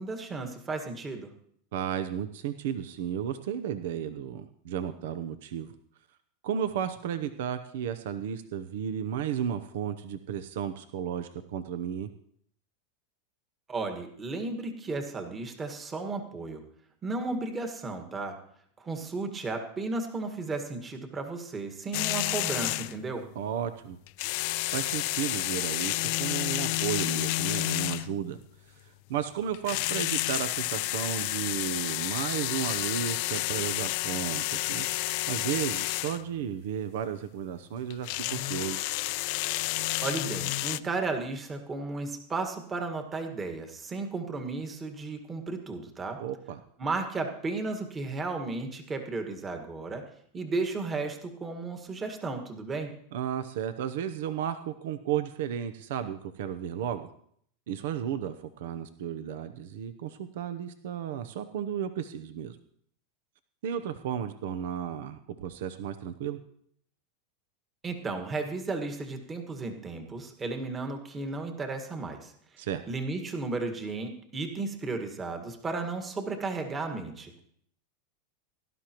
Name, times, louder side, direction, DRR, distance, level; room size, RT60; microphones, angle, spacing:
voice 1, 0.0-1.3 13.7-16.6 17.0-18.4 18.8-23.3 40.0-46.2 46.8-50.0 50.3-52.9 67.8-72.3 72.9-77.3, right 3 dB, 20° right, 5 dB, 1.7 m, -34 dB
voice 2, 1.7-5.7 6.4-12.1 23.3-24.0 24.3-28.4 28.6-34.8 35.3-38.8 46.2-46.6 53.1-57.1 57.7-62.6 63.6-66.4 72.6-72.8, right 9 dB, 75° right, 11 dB, 0.8 m, -33 dB
sound 1, 21.9-23.0 24.1-28.2 29.5-36.2 37.9-40.8, left 20 dB, 60° left, 0.4 m, -30 dB
18.0 x 12.0 x 3.0 m, 0.65 s
supercardioid pair, 125°, 0 cm